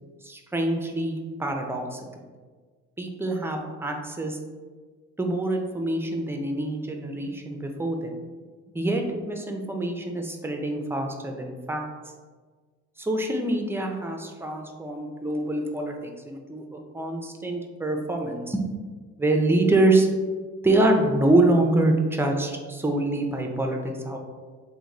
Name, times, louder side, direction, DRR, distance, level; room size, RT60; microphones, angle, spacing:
voice 1, 0.2-2.2 3.0-4.4 5.2-8.1 8.7-11.9 13.0-18.6 19.2-20.1 20.6-24.2, right 2 dB, 10° right, 3 dB, 0.4 m, -25 dB
2.9 x 2.1 x 3.7 m, 1.5 s
cardioid pair, 90°, 30 cm